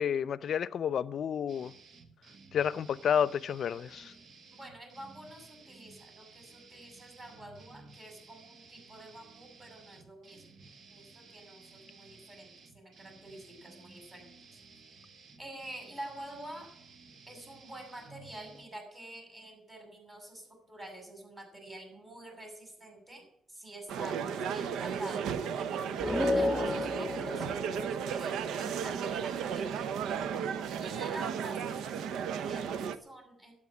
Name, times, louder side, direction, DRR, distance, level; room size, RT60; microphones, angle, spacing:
voice 1, 0.0-1.7 2.5-4.1, left 8 dB, 60° left, 0.6 m, -30 dB
sound 1, 1.5-18.6, right 4 dB, 55° right, 1.9 m, -55 dB
voice 2, 3.7-4.1 4.5-10.4 10.9-14.3 15.4-16.7 17.3-23.2 23.5-25.6 26.2-29.7 30.8-33.5, right 1 dB, 20° right, 7.2 m, -48 dB
sound 2, 23.9-33.0, right 7 dB, 80° right, 0.8 m, -34 dB
sound 3, 26.0-28.7, left 2 dB, 10° left, 1.2 m, -32 dB
12.0 x 8.9 x 9.7 m
cardioid pair, 90°, 0 cm